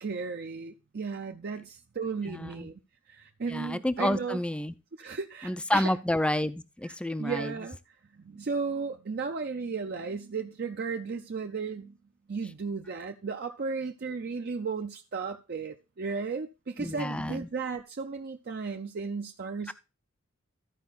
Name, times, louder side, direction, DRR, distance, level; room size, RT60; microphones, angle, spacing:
voice 1, 0.0-2.8 3.1-4.4 5.0-5.9 6.8-6.9 7.2-7.8 8.2-12.0 12.3-19.7, right 4 dB, 50° right, 0.5 m, -35 dB
voice 2, 2.3-2.7 3.5-4.7 5.4-7.5 16.8-17.5 19.7-19.8, left 1 dB, 5° left, 0.4 m, -30 dB
13.5 x 4.7 x 4.0 m
head